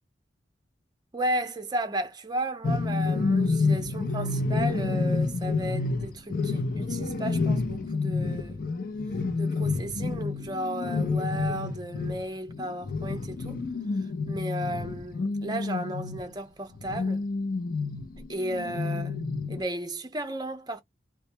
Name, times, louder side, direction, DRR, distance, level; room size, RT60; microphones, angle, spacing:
voice 1, 1.1-8.6 9.4-13.6 14.3-17.2 18.3-19.2 19.5-20.8, right 1 dB, 25° right, 0.5 m, -34 dB
sound 1, 2.6-16.3 16.7-19.6, left 3 dB, 55° left, 0.5 m, -29 dB
2.2 x 2.1 x 2.8 m
head